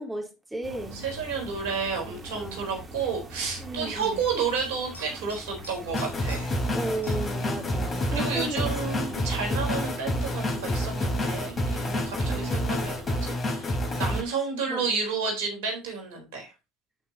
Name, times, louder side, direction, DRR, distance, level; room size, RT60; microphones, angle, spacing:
voice 1, 0.0-1.0 2.1-2.7 3.6-4.2 6.7-9.3 12.2-12.7 14.7-14.8, right 1 dB, 10° right, 1 dB, 3.8 m, -35 dB
sound 1, 0.6-13.1, right 2 dB, 30° right, 3.2 m, -43 dB
voice 2, 0.7-6.5 8.1-16.5, right 5 dB, 75° right, 1 dB, 4.2 m, -31 dB
sound 2, 1.2-1.4 4.0-4.2 4.6-6.7 7.0-7.3 9.8-9.9, left 2 dB, 80° left, 3.4 m, -48 dB
sound 3, 5.9-14.2, left 1 dB, 35° left, 4.3 m, -28 dB
11.5 x 6.1 x 2.9 m, 0.26 s
hypercardioid pair, 70°, 0 cm